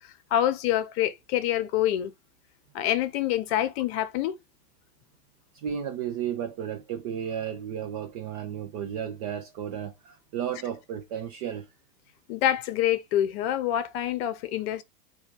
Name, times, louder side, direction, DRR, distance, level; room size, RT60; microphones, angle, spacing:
voice 1, 0.3-2.1 2.7-4.3 12.3-14.8, left 12 dB, 40° left, 0.8 m, -26 dB
voice 2, 5.5-11.7, right 9 dB, 25° right, 0.4 m, -33 dB
4.3 x 2.4 x 4.1 m
hypercardioid pair, 115°, 46 cm